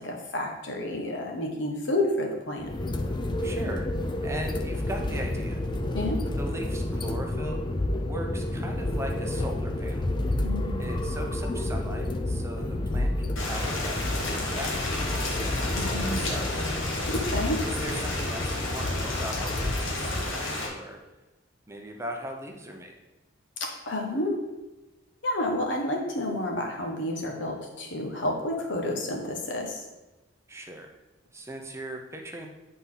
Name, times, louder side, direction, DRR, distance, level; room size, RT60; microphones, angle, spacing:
voice 1, 0.0-2.7 5.9-6.2 10.4-10.9 15.7-16.3 17.1-17.6 23.6-24.4 25.2-29.9, left 1 dB, 70° left, 1 dB, 1.3 m, -30 dB
sound 1, 2.6-20.2, left 1 dB, 25° left, 0.5 m, -30 dB
voice 2, 3.4-5.6 6.4-7.6 8.1-10.1 10.8-16.7 17.6-21.0 21.7-22.9 30.5-30.9 31.3-32.5, right 1 dB, 15° right, 2 dB, 0.7 m, -39 dB
Rain, 13.4-20.7, left 2 dB, 85° left, 1.4 m, -32 dB
8.6 x 4.2 x 3.9 m, 1.1 s
head